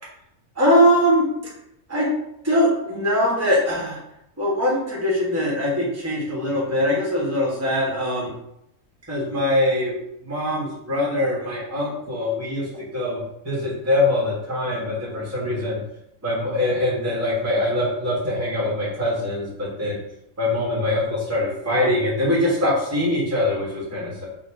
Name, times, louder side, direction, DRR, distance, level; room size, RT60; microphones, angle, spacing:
voice 1, 0.5-1.2 1.9-2.1 2.4-4.0 4.4-8.3 9.1-9.9 10.2-15.8 16.2-20.0 20.4-24.2, left 1 dB, 10° right, -5 dB, 1.3 m, -22 dB
3.8 x 2.6 x 4.6 m, 0.81 s
omnidirectional pair, 1.4 m